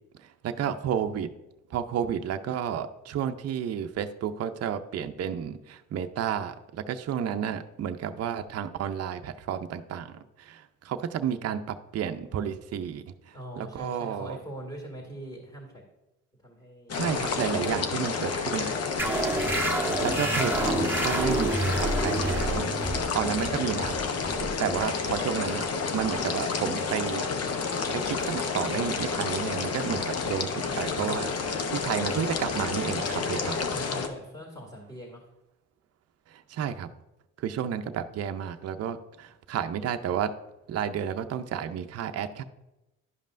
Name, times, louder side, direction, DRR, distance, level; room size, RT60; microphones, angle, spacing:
voice 1, 0.2-1.3 1.7-14.4 16.9-18.8 20.0-22.7 23.1-24.2 24.6-25.7 25.9-27.3 27.9-33.7 36.3-36.9 37.4-40.3 40.7-42.4, right 8 dB, 55° right, 8 dB, 0.6 m, -31 dB
voice 2, 13.3-15.8 16.4-17.0 17.9-18.0 18.4-19.2 29.9-30.8 33.7-35.2, right 1 dB, 15° left, -2 dB, 2.0 m, -42 dB
sound 1, 16.9-34.1, left 5 dB, 55° left, 0.8 m, -30 dB
sound 2, 19.0-26.1, right 2 dB, 5° right, 0.9 m, -29 dB
11.0 x 5.3 x 2.5 m, 0.96 s
cardioid pair, 90°, 30 cm